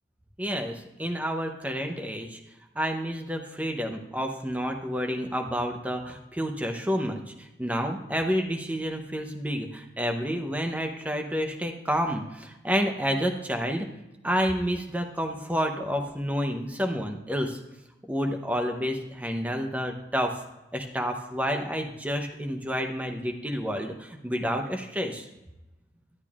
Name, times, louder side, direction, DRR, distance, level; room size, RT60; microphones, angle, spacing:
voice 1, 0.4-2.4 2.8-17.6 18.0-20.4 20.7-25.3, equal, 10° right, 4 dB, 0.7 m, -29 dB
12.0 x 8.8 x 2.4 m, 0.96 s
head